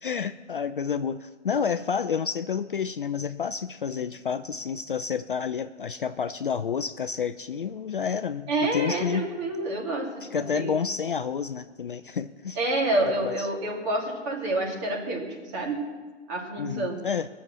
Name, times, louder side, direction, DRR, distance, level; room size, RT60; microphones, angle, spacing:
voice 1, 0.0-9.3 10.2-12.6 13.2-13.5 16.6-17.3, left 6 dB, 45° left, 10 dB, 0.5 m, -30 dB
voice 2, 8.5-10.8 12.6-15.8 16.3-17.0, right 2 dB, 25° right, -1 dB, 2.5 m, -28 dB
20.5 x 7.0 x 7.4 m, 1.4 s
figure-of-eight pair, 150°, 37 cm